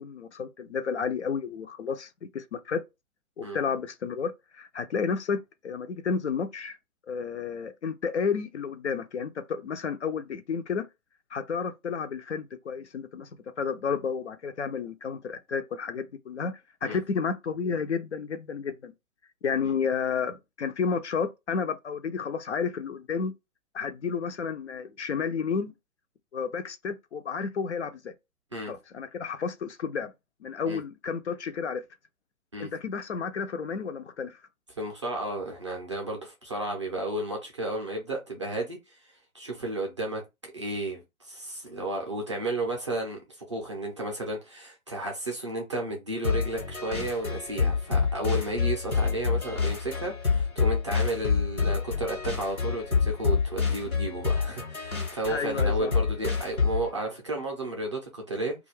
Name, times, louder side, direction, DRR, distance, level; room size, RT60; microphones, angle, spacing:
voice 1, 0.0-2.8 3.4-6.8 7.1-10.9 11.3-13.3 13.6-18.9 19.4-23.3 23.7-25.7 26.3-28.1 28.7-30.1 30.4-31.8 32.6-34.4 55.3-55.9, left 6 dB, 55° left, 0.4 m, -31 dB
voice 2, 34.8-58.5, right 1 dB, 25° right, 0.4 m, -33 dB
sound 1, 46.2-56.9, left 5 dB, 90° left, 1.1 m, -27 dB
2.3 x 2.2 x 3.1 m
figure-of-eight pair, 125°, 42 cm